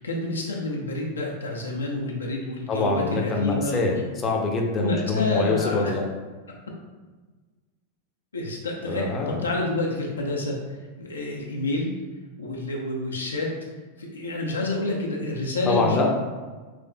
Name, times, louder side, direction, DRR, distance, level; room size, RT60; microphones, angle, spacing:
voice 1, 0.0-3.8 4.8-5.9 8.3-10.6 11.0-11.9 12.4-13.5 14.0-16.1, left 2 dB, 75° left, -1 dB, 0.7 m, -28 dB
voice 2, 2.7-6.0 8.9-9.4 15.7-16.1, left 3 dB, 25° left, 0 dB, 0.7 m, -24 dB
6.0 x 3.1 x 2.2 m, 1.3 s
figure-of-eight pair, 90°, 0 cm